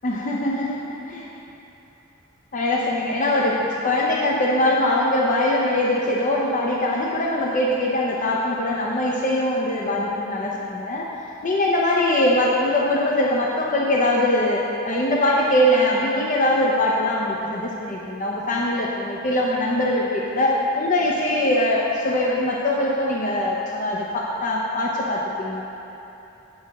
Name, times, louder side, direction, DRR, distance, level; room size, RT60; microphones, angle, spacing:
voice 1, 0.0-1.3 2.5-11.1 11.4-25.6, left 1 dB, 40° left, -3 dB, 0.7 m, -22 dB
8.6 x 7.5 x 4.1 m, 3.0 s
head